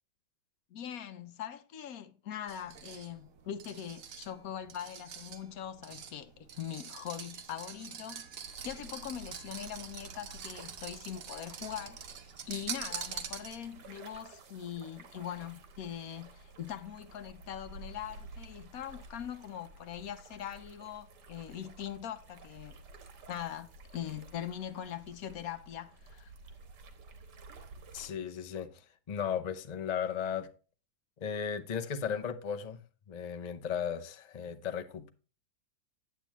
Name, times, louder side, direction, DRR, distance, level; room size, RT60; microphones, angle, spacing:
voice 1, 0.7-22.8 23.3-26.3, left 9 dB, 65° left, 1.1 m, -42 dB
sound 1, 2.5-13.9, right 7 dB, 60° right, 1.2 m, -45 dB
sound 2, 8.4-28.1, right 3 dB, 90° right, 1.9 m, -53 dB
voice 2, 27.9-28.7 29.1-30.5 31.2-32.8 33.1-35.1, left 7 dB, 50° left, 0.5 m, -35 dB
9.1 x 8.5 x 3.0 m
omnidirectional pair, 1.8 m